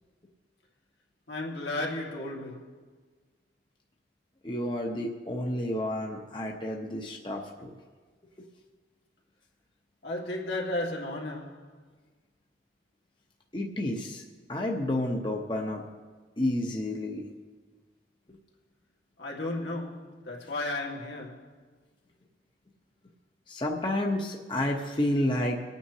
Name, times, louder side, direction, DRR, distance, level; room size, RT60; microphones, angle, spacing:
voice 1, 1.3-2.8 10.0-11.8 19.2-21.6, left 2 dB, 80° left, 1.9 m, -34 dB
voice 2, 4.4-7.7 8.4-8.5 13.5-14.2 14.5-15.8 16.4-17.2 23.5-25.6, left 1 dB, 25° left, 0.9 m, -30 dB
24.0 x 9.2 x 2.8 m
head